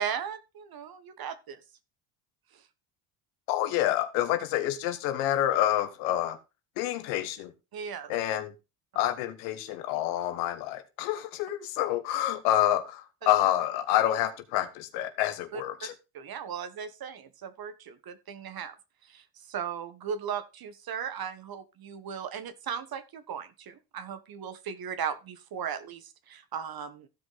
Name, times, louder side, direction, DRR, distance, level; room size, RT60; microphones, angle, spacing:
voice 1, 0.0-1.6 2.5-2.6 7.7-8.1 15.5-15.9 16.1-18.7 19.0-27.1, right 7 dB, 45° right, 1.3 m, -37 dB
voice 2, 3.5-6.4 6.8-7.5 8.1-8.5 8.9-15.9, left 13 dB, 80° left, 1.3 m, -28 dB
15.0 x 5.1 x 3.9 m
supercardioid pair, 80°, 49 cm